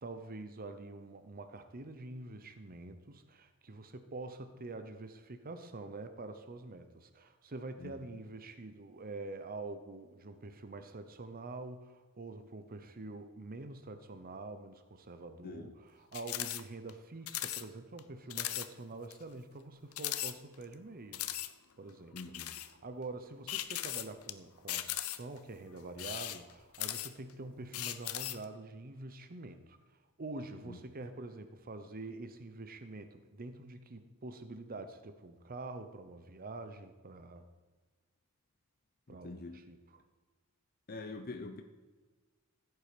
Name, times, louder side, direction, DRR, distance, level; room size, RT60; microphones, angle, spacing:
voice 1, 0.0-21.3 21.8-22.2 22.6-29.8 30.2-37.4 39.1-40.0, right 2 dB, 45° right, 9 dB, 0.8 m, -46 dB
voice 2, 15.4-15.7 22.1-22.6 30.6-30.8 39.1-39.6 40.9-41.6, left 3 dB, 45° left, 5 dB, 0.8 m, -45 dB
sound 1, 16.1-16.6 16.9-17.0 17.3-17.6 18.0-18.1 18.3-18.7 19.1-19.2 19.9-20.7 21.1-21.5 22.2-22.7 23.5-24.3 24.7-25.4 25.9-27.3 27.7-28.4, left 14 dB, 85° left, 0.7 m, -38 dB
15.0 x 8.3 x 5.1 m, 1.3 s
head